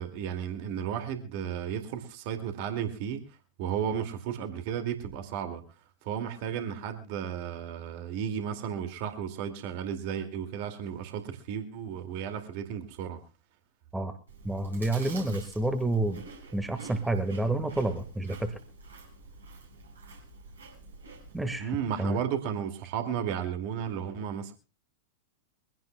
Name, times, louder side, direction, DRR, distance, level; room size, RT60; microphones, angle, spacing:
voice 1, 0.0-3.2 3.6-5.6 6.0-13.2 21.6-24.5, right 8 dB, 50° right, 7 dB, 2.3 m, -34 dB
Chewing mastication, 14.3-21.6, right 4 dB, 75° right, 6.4 m, -48 dB
voice 2, 14.4-16.2 16.5-18.5 21.3-22.2, right 2 dB, 5° right, 8 dB, 1.6 m, -29 dB
23.5 x 16.5 x 2.3 m, 0.30 s
figure-of-eight pair, 95°, 0 cm